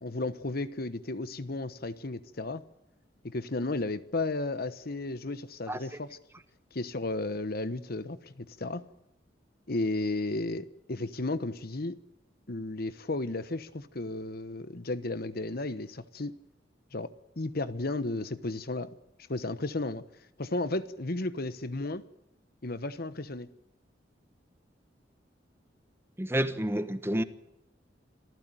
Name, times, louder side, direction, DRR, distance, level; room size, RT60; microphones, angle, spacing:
voice 1, 0.0-2.6 3.2-6.2 6.7-8.9 9.7-12.0 12.5-16.4 16.9-18.9 19.3-20.0 20.4-22.0 22.6-23.5, left 2 dB, 55° left, 1.1 m, -34 dB
voice 2, 26.2-27.2, right 1 dB, 15° right, 1.3 m, -29 dB
26.5 x 15.5 x 9.2 m
head